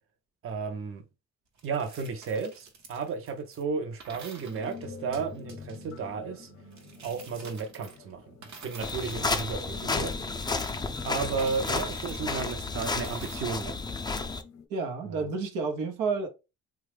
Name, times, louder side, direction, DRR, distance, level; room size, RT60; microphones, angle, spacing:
voice 1, 0.4-1.0 1.6-6.5 7.0-10.1 11.0-13.8 15.1-15.3, right 5 dB, 45° right, 0.6 m, -33 dB
sound 1, 1.6-3.6 4.0-6.0 6.7-8.1 8.4-10.0 10.7-13.4, right 4 dB, 65° right, 1.0 m, -50 dB
sound 2, 4.4-14.7, left 5 dB, 55° left, 0.7 m, -48 dB
sound 3, 8.8-14.4, left 3 dB, 15° left, 0.4 m, -32 dB
voice 2, 14.7-16.3, right 4 dB, 90° right, 0.8 m, -30 dB
3.0 x 2.3 x 3.2 m
cardioid pair, 90°, 30 cm